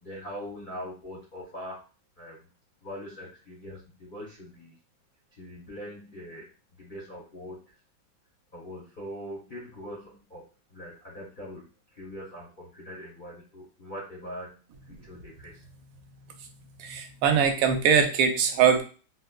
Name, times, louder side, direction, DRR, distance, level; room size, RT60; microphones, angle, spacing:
voice 1, 0.0-1.8 2.2-2.4 2.8-4.7 5.4-6.5 6.8-7.7 8.5-10.4 10.7-15.7, equal, 80° left, -5 dB, 0.4 m, -42 dB
voice 2, 16.8-18.8, right 7 dB, 85° right, 5 dB, 1.4 m, -22 dB
3.9 x 2.1 x 2.2 m, 0.36 s
omnidirectional pair, 2.2 m